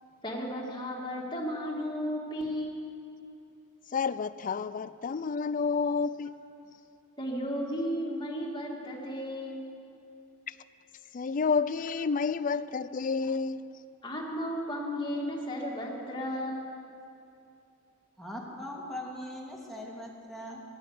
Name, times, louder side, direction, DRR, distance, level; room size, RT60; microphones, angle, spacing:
voice 1, 0.2-2.8 7.2-9.6 14.0-16.7, equal, 20° left, 2.4 m, -34 dB
voice 2, 3.9-6.3 10.5-10.6 11.1-13.6, left 5 dB, 40° left, 0.4 m, -30 dB
voice 3, 18.2-20.6, left 1 dB, ahead, 2.5 m, -40 dB
14.5 x 11.5 x 8.3 m
head